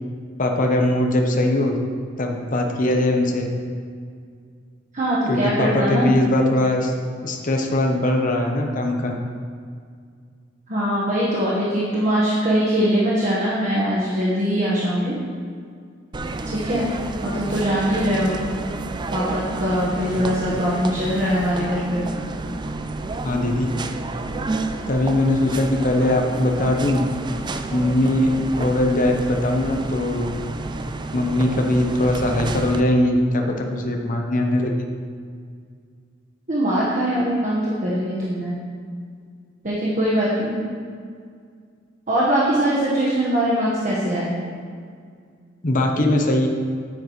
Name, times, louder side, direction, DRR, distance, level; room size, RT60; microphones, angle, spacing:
voice 1, 0.4-1.8 2.2-3.5 5.3-6.9 7.2-9.1 20.2-20.3 23.2-23.7 24.9-27.0 27.7-28.3 28.6-30.3 31.1-34.9 45.6-46.5, left 1 dB, 45° left, 2 dB, 0.9 m, -20 dB
voice 2, 4.9-6.1 10.7-15.1 16.5-16.9 17.2-18.3 19.1-22.0 36.5-38.6 39.6-40.6 42.1-44.3, equal, 40° right, -8 dB, 1.4 m, -22 dB
sound 1, 16.1-32.8, right 2 dB, 25° right, 0.4 m, -30 dB
9.6 x 9.2 x 3.2 m, 2.1 s
head